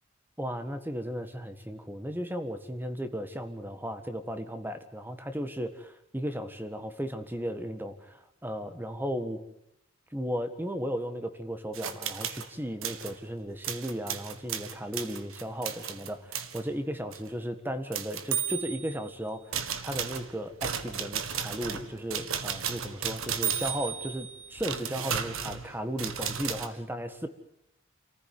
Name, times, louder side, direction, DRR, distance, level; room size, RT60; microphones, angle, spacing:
voice 1, 0.4-9.4 10.1-19.4 19.8-27.3, equal, 10° right, 9 dB, 1.6 m, -35 dB
sound 1, 11.7-12.5 12.8-13.1 13.6-16.6 17.1-17.3 17.9-19.1 19.5-26.7, right 8 dB, 70° right, 1.7 m, -34 dB
28.0 x 15.0 x 9.5 m, 0.78 s
head